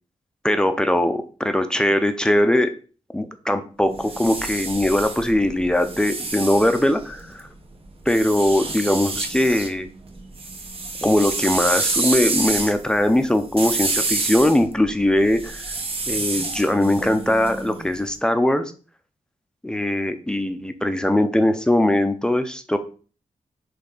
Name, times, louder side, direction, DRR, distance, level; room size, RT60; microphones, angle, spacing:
voice 1, 0.4-2.7 3.1-7.5 8.1-9.9 11.0-15.6 16.1-18.6 19.6-22.8, left 1 dB, 5° left, 8 dB, 0.6 m, -20 dB
sound 1, 3.9-7.4 8.1-9.7 10.1-18.0, right 3 dB, 45° right, 1.1 m, -28 dB
8.1 x 3.3 x 4.0 m, 0.39 s
wide cardioid pair, 150°, 13 cm